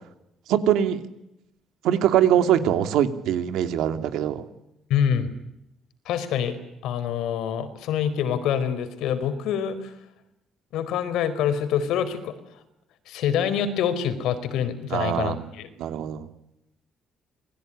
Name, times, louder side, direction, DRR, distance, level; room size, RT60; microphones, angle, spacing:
voice 1, 0.5-1.0 1.8-4.4 14.9-15.5 15.8-16.3, right 10 dB, 85° right, 9 dB, 2.7 m, -22 dB
voice 2, 4.9-5.3 6.1-6.6 6.8-9.9 10.7-12.3 13.1-15.7, left 8 dB, 90° left, 11 dB, 4.3 m, -26 dB
28.0 x 21.0 x 10.0 m, 0.86 s
cardioid pair, 155°, 0 cm